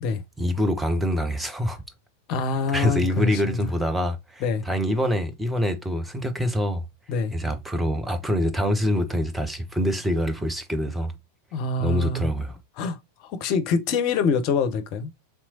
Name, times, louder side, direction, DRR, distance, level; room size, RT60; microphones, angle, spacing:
voice 1, 0.4-1.8 2.7-6.8 7.3-11.1 11.8-12.6, equal, 5° right, 0.6 m, -25 dB
voice 2, 2.3-3.6 4.4-4.6 7.1-7.3 11.5-12.3 12.8-13.0 13.4-15.1, left 4 dB, 40° left, 0.6 m, -25 dB
3.4 x 3.0 x 2.7 m
figure-of-eight pair, 90°, 0 cm